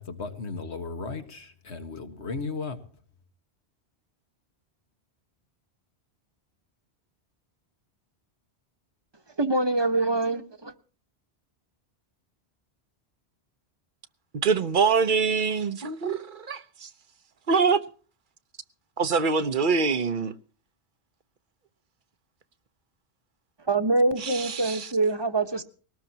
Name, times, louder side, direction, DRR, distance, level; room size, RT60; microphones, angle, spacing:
voice 1, 0.0-2.8, left 4 dB, 80° left, 1.9 m, -35 dB
voice 2, 9.4-10.7 23.7-25.6, right 2 dB, 25° right, 1.1 m, -24 dB
voice 3, 14.3-16.9 17.5-17.8 19.0-20.3 24.2-24.9, right 5 dB, 50° right, 1.0 m, -24 dB
21.0 x 18.5 x 2.9 m
omnidirectional pair, 1.1 m